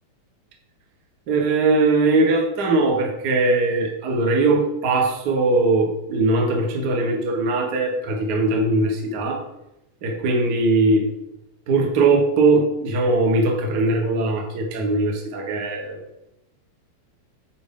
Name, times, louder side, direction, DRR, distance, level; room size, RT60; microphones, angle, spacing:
voice 1, 1.3-9.4 10.0-11.1 11.7-16.0, right 3 dB, 60° right, 1 dB, 1.1 m, -20 dB
8.8 x 4.7 x 3.7 m, 0.89 s
omnidirectional pair, 3.5 m